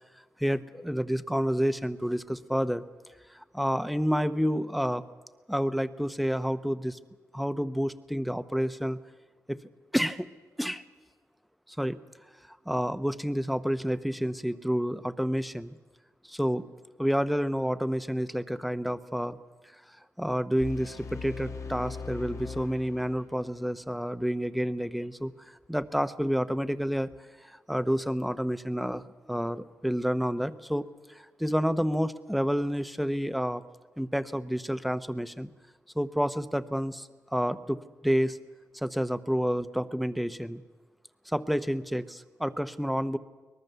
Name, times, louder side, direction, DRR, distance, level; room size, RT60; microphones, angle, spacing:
voice 1, 0.4-2.8 3.5-5.0 5.5-7.0 7.3-9.0 9.5-9.6 9.9-10.3 10.6-10.8 11.8-12.0 12.7-15.7 16.3-16.6 17.0-19.4 20.2-25.3 25.7-27.1 27.4-29.0 29.3-30.8 31.4-33.6 34.0-35.5 36.0-37.8 38.0-38.4 38.7-40.6 41.3-43.2, equal, ahead, 12 dB, 0.8 m, -29 dB
sound 1, 20.6-23.6, left 4 dB, 50° left, 1.4 m, -40 dB
23.0 x 19.5 x 6.8 m, 1.3 s
cardioid pair, 90°, 6 cm